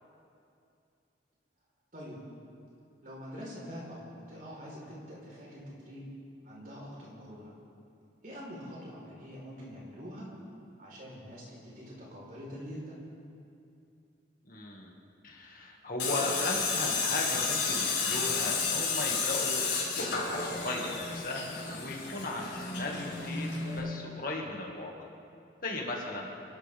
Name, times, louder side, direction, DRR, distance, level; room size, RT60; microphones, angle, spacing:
voice 1, 1.9-2.2 3.0-6.1 6.4-7.5 8.2-10.3 10.8-13.0, equal, 45° right, -5 dB, 4.5 m, -45 dB
voice 2, 14.4-15.0 15.2-20.1 20.4-25.1 25.6-26.3, left 2 dB, 45° left, -1 dB, 2.1 m, -37 dB
Tools, 16.0-23.8, left 4 dB, 75° left, 4.7 m, -32 dB
29.0 x 12.0 x 3.7 m, 2.6 s
head